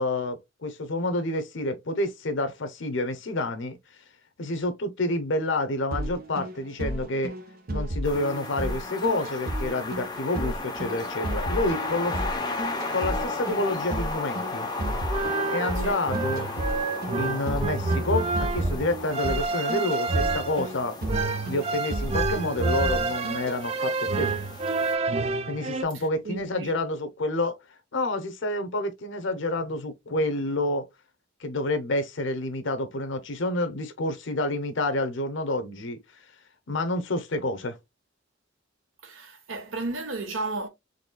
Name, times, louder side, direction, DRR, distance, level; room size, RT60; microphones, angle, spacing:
voice 1, 0.0-3.8 4.4-7.3 7.7-12.2 12.9-14.7 15.5-16.5 17.2-21.0 21.5-24.4 25.5-27.5 27.9-30.8 31.4-36.0 36.7-37.8, left 2 dB, 70° left, 0.7 m, -28 dB
sound 1, 5.9-23.6, right 1 dB, 50° right, 0.8 m, -33 dB
sound 2, 8.0-24.9, left 3 dB, 20° left, 0.7 m, -35 dB
sound 3, 14.9-25.8, right 3 dB, 35° right, 0.3 m, -28 dB
voice 2, 15.8-16.1 25.9-26.7 39.0-40.7, right 3 dB, 80° right, 0.9 m, -34 dB
4.0 x 3.1 x 2.2 m
head